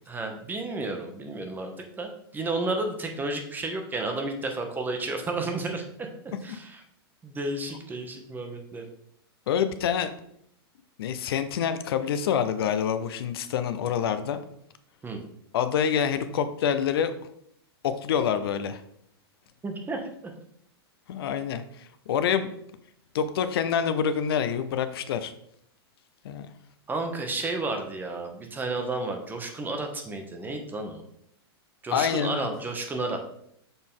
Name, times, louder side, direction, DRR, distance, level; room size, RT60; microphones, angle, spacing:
voice 1, 0.1-1.7 2.0-6.8 7.2-8.8 15.0-15.2 19.6-20.3 26.9-31.0 31.8-33.2, right 2 dB, 15° right, 4 dB, 1.0 m, -32 dB
voice 2, 9.5-10.1 11.0-14.4 15.5-17.1 17.8-18.8 21.1-22.5 23.1-25.3 26.2-26.5 31.9-32.5, left 8 dB, 70° left, 11 dB, 0.6 m, -26 dB
6.9 x 4.1 x 3.7 m, 0.71 s
hypercardioid pair, 125°, 13 cm